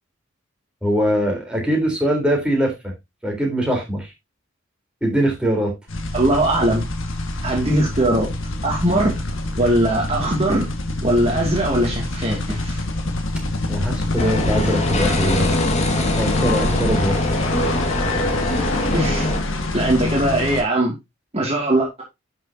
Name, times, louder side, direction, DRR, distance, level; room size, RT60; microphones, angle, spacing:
voice 1, 0.8-2.9 3.2-4.1 5.0-5.7 7.6-7.7 8.8-9.1 13.7-15.6 16.2-17.2, equal, 5° right, -1 dB, 3.9 m, -22 dB
sound 1, 5.9-20.6, left 2 dB, 75° left, 1.8 m, -25 dB
voice 2, 6.1-6.9 7.4-8.3 8.6-9.1 9.6-10.7 11.0-12.8 18.9-19.3 19.7-20.9 21.3-22.0, right 1 dB, 30° right, -2 dB, 2.4 m, -20 dB
sound 2, 14.2-19.4, left 1 dB, 35° left, 2.0 m, -24 dB
11.0 x 6.6 x 2.8 m, 0.21 s
head